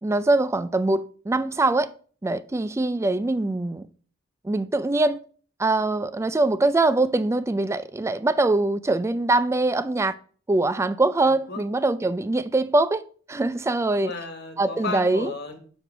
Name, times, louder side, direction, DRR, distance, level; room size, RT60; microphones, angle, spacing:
voice 1, 0.0-1.9 2.2-3.8 4.4-5.2 5.6-10.1 10.5-13.0 13.3-14.1 14.6-15.3, right 2 dB, 15° right, 0.3 m, -23 dB
voice 2, 11.2-11.6 14.0-15.6, left 3 dB, 55° left, 1.4 m, -34 dB
7.1 x 6.1 x 3.3 m
head